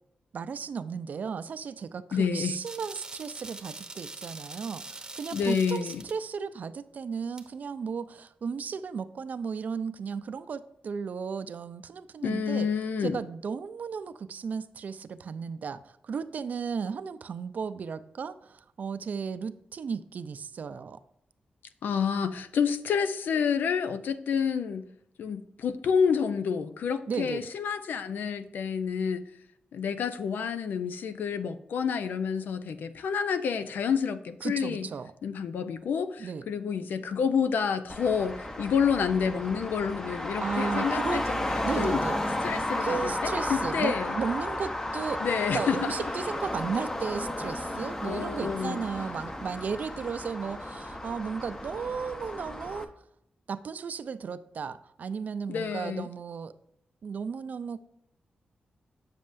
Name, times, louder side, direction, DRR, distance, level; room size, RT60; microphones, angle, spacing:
voice 1, 0.3-12.7 13.0-21.0 27.1-27.5 34.4-35.1 36.2-36.5 40.4-41.2 41.6-42.3 42.8-45.2 45.5-52.9 53.5-56.5 57.0-57.8, right 6 dB, 60° right, 13 dB, 0.5 m, -35 dB
voice 2, 2.1-2.6 5.3-6.0 12.2-13.2 21.8-24.9 25.2-29.2 29.7-34.9 35.2-42.0 42.4-44.2 45.2-45.9 48.0-48.8 55.5-56.1, left 6 dB, 90° left, 11 dB, 0.5 m, -29 dB
sound 1, 2.6-6.2 7.4-7.5, right 3 dB, 25° right, 0.8 m, -43 dB
Traffic noise roadway noise, 37.9-52.8, left 1 dB, 20° left, 0.7 m, -33 dB
7.6 x 7.3 x 2.6 m, 0.78 s
wide cardioid pair, 110°, 3 cm